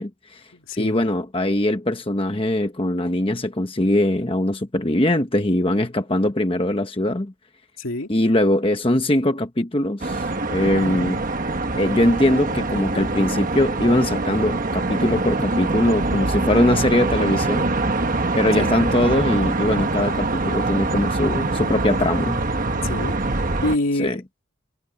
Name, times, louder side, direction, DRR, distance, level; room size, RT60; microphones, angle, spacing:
voice 1, 0.0-0.4 0.8-7.3 8.1-11.2 11.8-17.7 18.4-22.4 24.0-24.2, left 1 dB, 25° left, 1.0 m, -21 dB
voice 2, 0.5-1.0 7.8-8.1 18.6-18.7 22.7-24.4, left 2 dB, 70° left, 2.4 m, -27 dB
sound 1, 10.0-23.8, right 2 dB, 40° right, 1.2 m, -24 dB
head